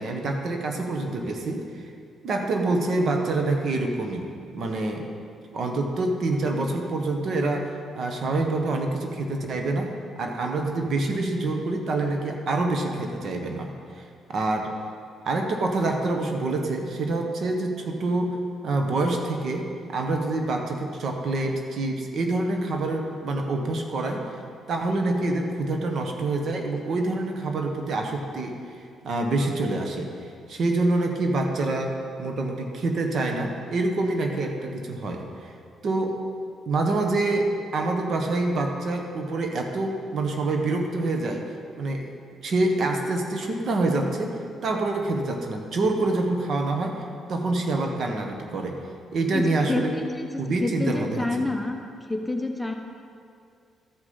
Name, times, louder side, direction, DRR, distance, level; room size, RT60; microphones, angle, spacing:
voice 1, 0.0-1.9 2.2-4.3 4.5-5.1 5.5-9.9 10.2-14.0 14.3-14.7 15.2-18.4 18.6-24.3 24.7-28.6 29.0-30.1 30.5-35.5 35.8-36.2 36.7-42.1 42.4-48.8 49.1-49.9 50.4-51.3, right 2 dB, 60° right, 3 dB, 1.2 m, -26 dB
voice 2, 49.3-51.8 52.1-52.7, left 2 dB, 5° left, 3 dB, 0.9 m, -28 dB
13.5 x 5.1 x 5.6 m, 2.4 s
cardioid pair, 90°, 0 cm